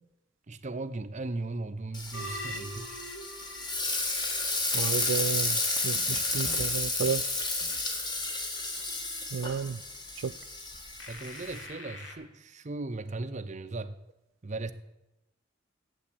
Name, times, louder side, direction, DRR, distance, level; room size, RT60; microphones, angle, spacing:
voice 1, 0.5-3.0 11.1-13.9 14.4-14.7, right 2 dB, 40° right, 0.7 m, -37 dB
Frying (food), 1.9-11.7, left 2 dB, 25° left, 1.5 m, -32 dB
sound 1, 2.1-5.0 6.4-6.6 7.0-7.2 7.6-7.8 8.2-8.3 11.0-12.1, equal, 85° left, 1.9 m, -43 dB
voice 2, 4.7-5.6 5.8-7.2 9.3-9.8 10.2-10.3, right 6 dB, 90° right, 0.4 m, -31 dB
8.7 x 8.1 x 8.5 m
head